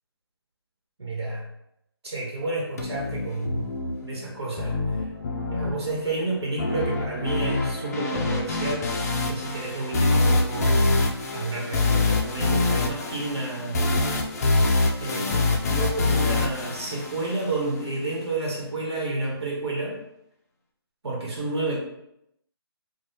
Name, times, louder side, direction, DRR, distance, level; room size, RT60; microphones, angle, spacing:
voice 1, 1.0-1.5 2.0-3.7 4.0-5.1 5.5-8.9 9.2-13.9 15.0-20.0 21.0-21.8, right 2 dB, 85° right, -3 dB, 1.0 m, -30 dB
sound 1, 2.8-17.8, left 3 dB, 40° left, 0.4 m, -25 dB
2.7 x 2.3 x 3.3 m, 0.80 s
hypercardioid pair, 155°, 13 cm